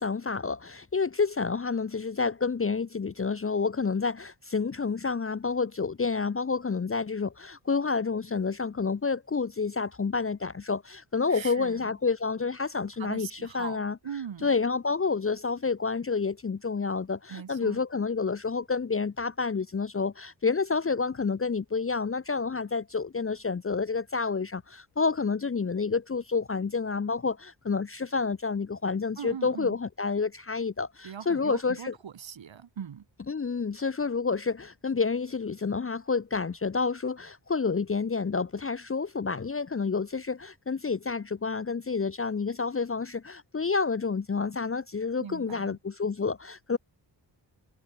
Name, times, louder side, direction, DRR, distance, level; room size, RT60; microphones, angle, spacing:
voice 1, 0.0-14.0 14.4-31.9 33.3-46.8, left 4 dB, 30° left, 0.7 m, -29 dB
voice 2, 11.3-12.0 13.0-14.5 17.3-17.8 29.2-29.8 31.0-33.0 45.2-45.8, right 8 dB, 90° right, 2.7 m, -40 dB
wide cardioid pair, 115°, 44 cm